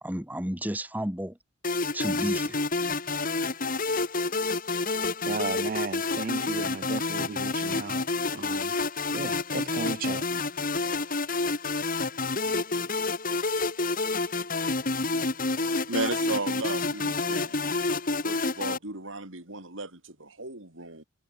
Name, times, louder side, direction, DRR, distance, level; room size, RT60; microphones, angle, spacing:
voice 1, 0.0-1.4 1.9-2.6, right 1 dB, 10° right, 1.8 m, -32 dB
sound 1, 1.6-18.8, left 3 dB, 45° left, 2.3 m, -29 dB
voice 2, 5.3-8.0 8.3-8.7 9.1-10.2, right 4 dB, 45° right, 0.5 m, -35 dB
voice 3, 15.9-17.8 18.2-21.0, right 2 dB, 75° right, 6.0 m, -35 dB
head